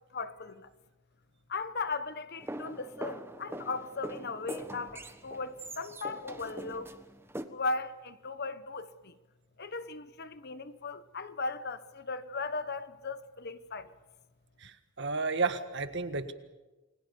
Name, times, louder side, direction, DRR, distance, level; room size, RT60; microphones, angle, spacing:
voice 1, 0.1-0.7 1.5-6.9 7.5-9.1 9.6-13.9, left 3 dB, 50° left, 1.1 m, -37 dB
sound 1, 2.4-7.4, right 1 dB, 10° right, 1.3 m, -43 dB
voice 2, 14.6-16.3, right 4 dB, 55° right, 1.7 m, -32 dB
29.5 x 21.5 x 7.0 m
head